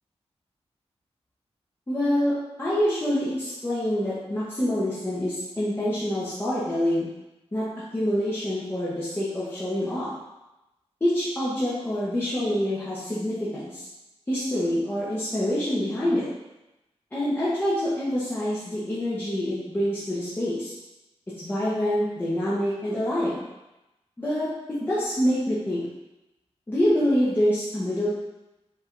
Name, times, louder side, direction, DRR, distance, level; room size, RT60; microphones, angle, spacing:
voice 1, 1.9-7.1 7.5-7.7 7.9-10.1 11.0-13.9 14.3-16.3 17.1-20.8 21.4-23.4 24.2-24.5 24.8-25.9 26.7-28.1, equal, 20° left, -10 dB, 0.8 m, -26 dB
5.5 x 3.3 x 2.5 m, 0.98 s
wide cardioid pair, 175°, 11 cm